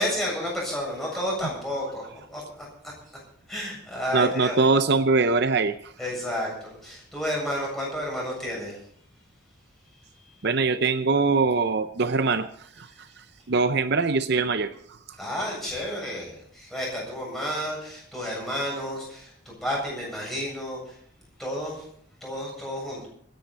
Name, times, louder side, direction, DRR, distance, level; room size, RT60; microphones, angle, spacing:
voice 1, 0.0-2.0 2.3-2.4 3.5-4.6 6.0-8.8 15.2-20.9 21.4-21.9 22.2-23.1, equal, ahead, -4 dB, 7.3 m, -31 dB
voice 2, 4.1-5.9 10.4-12.5 12.8-12.9 13.5-14.7, right 4 dB, 50° right, 11 dB, 0.6 m, -22 dB
25.5 x 10.5 x 4.1 m, 0.64 s
head